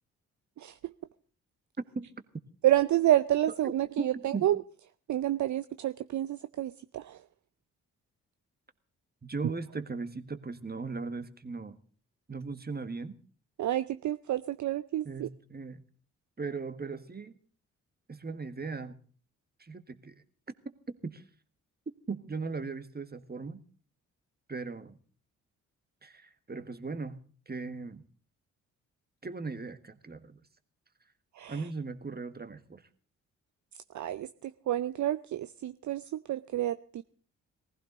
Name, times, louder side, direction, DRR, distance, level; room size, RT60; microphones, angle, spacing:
voice 1, 0.6-0.9 2.6-4.6 5.1-7.2 13.6-15.3 31.4-31.6 33.9-37.0, right 13 dB, 50° right, 13 dB, 0.6 m, -29 dB
voice 2, 4.0-4.5 9.2-11.8 12.3-13.2 15.1-15.8 16.4-17.4 18.1-19.0 19.6-20.2 20.7-20.8 21.0-21.2 22.1-23.6 24.5-25.0 26.0-27.2 27.5-28.0 29.2-30.4 31.5-32.8, right 4 dB, 25° right, 10 dB, 1.6 m, -38 dB
19.5 x 15.5 x 4.0 m, 0.43 s
hypercardioid pair, 40°, 36 cm